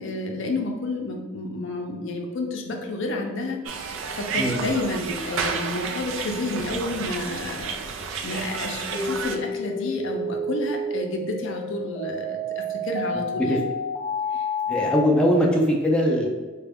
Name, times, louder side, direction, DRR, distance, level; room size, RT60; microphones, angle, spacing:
voice 1, 0.0-13.6 14.3-14.5, left 2 dB, 65° left, 2 dB, 0.5 m, -30 dB
sound 1, 3.7-9.4, right 5 dB, 65° right, 0.4 m, -31 dB
sound 2, 8.9-15.0, left 1 dB, 25° right, 0.7 m, -30 dB
voice 2, 13.1-13.6 14.7-16.3, equal, 5° left, -2 dB, 0.4 m, -21 dB
4.0 x 2.2 x 3.4 m, 1.3 s
head